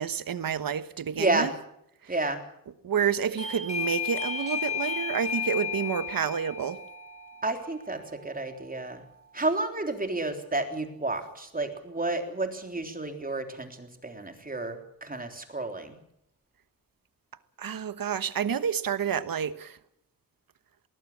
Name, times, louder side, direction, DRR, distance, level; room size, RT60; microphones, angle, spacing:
voice 1, 0.0-1.5 2.0-2.1 2.8-6.8 17.6-19.8, right 8 dB, 90° right, 1.2 m, -29 dB
voice 2, 2.1-2.4 7.4-9.0 9.3-16.0, right 2 dB, 25° right, 3.6 m, -31 dB
Doorbell, 3.4-9.8, left 6 dB, 20° left, 4.7 m, -35 dB
20.0 x 19.5 x 8.6 m
wide cardioid pair, 105°, 33 cm